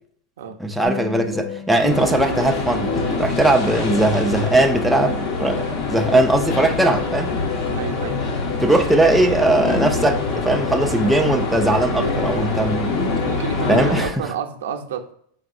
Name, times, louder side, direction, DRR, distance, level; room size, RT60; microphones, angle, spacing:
voice 1, 0.6-7.3 8.6-13.0 13.7-14.1, right 2 dB, ahead, 0.3 m, -19 dB
sound 1, 0.8-13.4, left 13 dB, 65° left, 0.5 m, -34 dB
sound 2, 0.8-5.5, left 1 dB, 15° left, 0.9 m, -34 dB
sound 3, 1.9-14.1, left 3 dB, 45° left, 0.9 m, -24 dB
voice 2, 7.7-8.3 13.3-15.1, right 7 dB, 85° right, 0.5 m, -30 dB
3.9 x 3.5 x 2.5 m
supercardioid pair, 155°, 0 cm